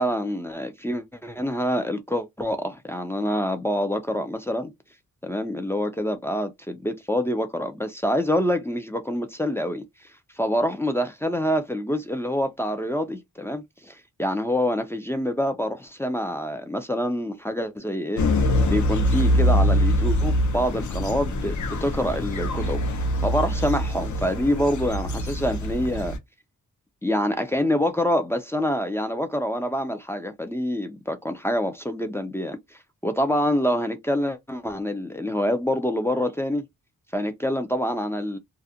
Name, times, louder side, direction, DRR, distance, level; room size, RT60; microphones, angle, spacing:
voice 1, 0.0-4.7 5.2-9.8 10.4-18.2 18.7-22.8 23.2-26.2 27.0-36.7 37.1-38.4, equal, 10° left, 0.3 m, -26 dB
sound 1, 18.2-26.2, equal, 55° left, 0.6 m, -24 dB
2.4 x 2.1 x 2.7 m
wide cardioid pair, 115°, 34 cm